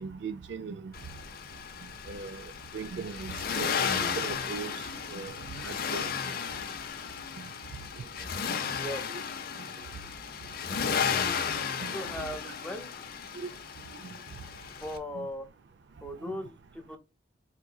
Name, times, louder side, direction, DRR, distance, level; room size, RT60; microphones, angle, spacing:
voice 1, 0.0-0.9 2.1-2.4 2.7-4.7 5.1-5.3 5.6-6.1 8.5-8.6 11.8-11.9 13.4-13.5 15.2-15.3, right 5 dB, 65° right, 0.4 m, -38 dB
Accelerating revving vroom, 0.9-15.0, left 6 dB, 55° left, 0.5 m, -34 dB
voice 2, 11.9-12.9 14.8-15.5 16.0-17.0, left 1 dB, 5° left, 0.7 m, -38 dB
3.6 x 2.9 x 2.2 m
head